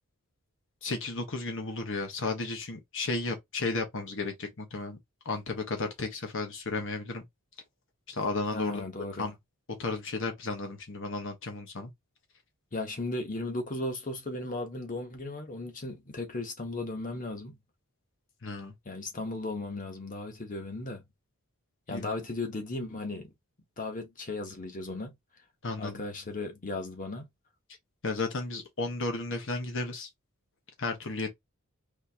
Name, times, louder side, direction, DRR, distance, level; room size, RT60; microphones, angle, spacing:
voice 1, 0.8-5.0 5.2-7.2 8.1-8.8 9.2-9.3 9.8-11.9 18.4-18.7 21.9-22.1 25.6-26.0 28.0-30.1 30.8-31.3, left 3 dB, 65° left, 1.2 m, -33 dB
voice 2, 8.5-9.3 12.7-17.6 18.8-21.0 21.9-23.3 23.8-25.1 25.8-27.3, left 2 dB, 40° left, 1.3 m, -36 dB
4.4 x 3.3 x 2.9 m
head